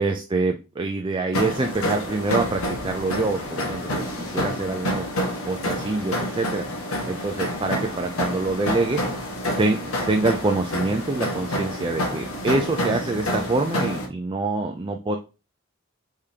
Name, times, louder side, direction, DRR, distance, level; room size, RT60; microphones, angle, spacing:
voice 1, 0.0-5.1 5.5-6.7 7.1-9.0 9.6-15.2, right 3 dB, 25° right, 4 dB, 0.4 m, -25 dB
sound 1, 1.3-14.0, left 1 dB, 80° left, 1.3 m, -28 dB
5.0 x 3.6 x 2.8 m, 0.30 s
head